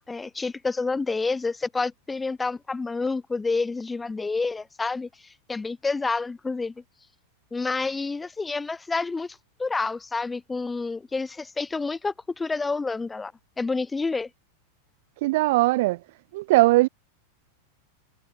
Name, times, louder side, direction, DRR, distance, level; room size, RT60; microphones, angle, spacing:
voice 1, 0.0-5.1 5.5-6.7 7.5-13.3 13.6-14.3, left 3 dB, 10° left, 2.0 m, -28 dB
voice 2, 15.2-16.0 16.3-16.9, right 20 dB, 65° right, 0.3 m, -19 dB
hypercardioid pair, 120°, 0 cm